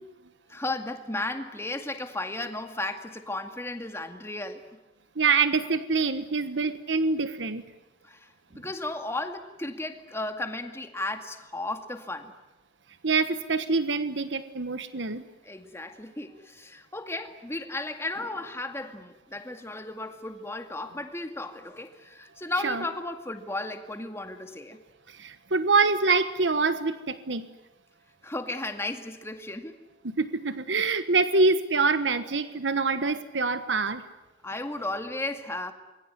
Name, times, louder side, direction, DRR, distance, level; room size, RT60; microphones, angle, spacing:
voice 1, 0.5-4.6 8.0-8.3 8.6-12.3 15.4-24.8 28.2-29.8 34.4-35.7, left 2 dB, 15° left, 6 dB, 2.2 m, -34 dB
voice 2, 5.2-7.6 13.0-15.2 22.6-22.8 25.2-27.5 30.2-34.0, right 4 dB, 80° right, 11 dB, 1.3 m, -25 dB
27.5 x 22.5 x 9.7 m, 1.1 s
head